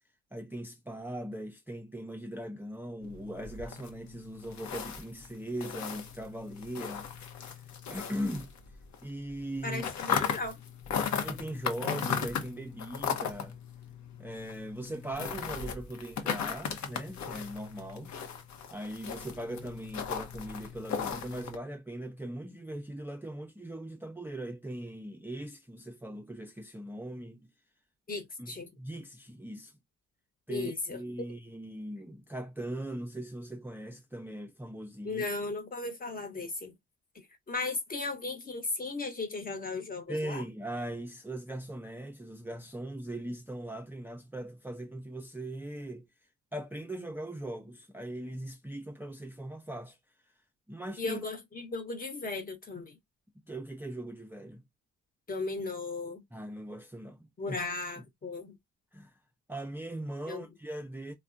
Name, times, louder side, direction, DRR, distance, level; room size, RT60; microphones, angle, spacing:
voice 1, 0.3-7.6 7.9-8.5 9.0-9.8 11.2-13.6 14.2-18.1 18.7-27.5 28.4-29.7 30.5-35.2 40.1-46.1 46.5-50.0 50.7-51.2 53.5-54.6 56.3-57.6 58.9-59.2 59.5-61.1, right 1 dB, 5° right, 0.4 m, -40 dB
sound 1, 3.0-9.0 9.3-21.6, left 7 dB, 70° left, 0.8 m, -37 dB
voice 2, 9.6-10.6 28.1-28.7 30.5-31.0 35.0-36.7 37.1-40.4 51.0-53.0 55.3-56.2 57.4-58.6 60.3-60.4, left 3 dB, 30° left, 1.0 m, -36 dB
3.4 x 2.2 x 2.5 m
cardioid pair, 90°, 30 cm